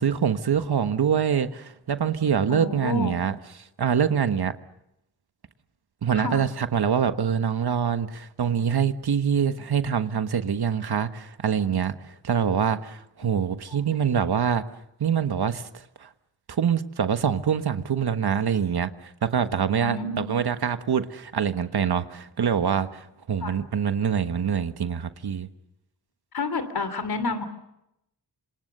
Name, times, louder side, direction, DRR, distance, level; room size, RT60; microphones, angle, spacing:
voice 1, 0.0-3.3 3.8-4.5 6.0-12.0 12.2-14.6 15.0-16.1 16.5-18.9 19.2-25.5, right 7 dB, 75° right, 1.4 m, -25 dB
voice 2, 2.5-3.1 6.1-6.4 19.5-20.3 23.4-23.6 26.3-27.4, left 3 dB, 70° left, 3.0 m, -29 dB
27.5 x 26.5 x 6.7 m
wide cardioid pair, 125°, 39 cm